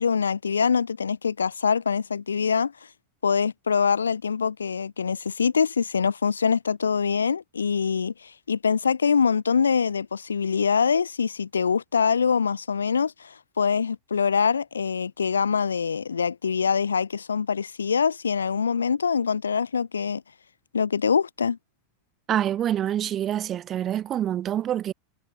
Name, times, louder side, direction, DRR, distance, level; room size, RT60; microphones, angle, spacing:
voice 1, 0.0-2.7 3.2-20.2 20.7-21.6, left 6 dB, 75° left, 5.9 m, -24 dB
voice 2, 22.3-24.9, right 11 dB, 35° right, 7.3 m, -26 dB
figure-of-eight pair, 85°, 0 cm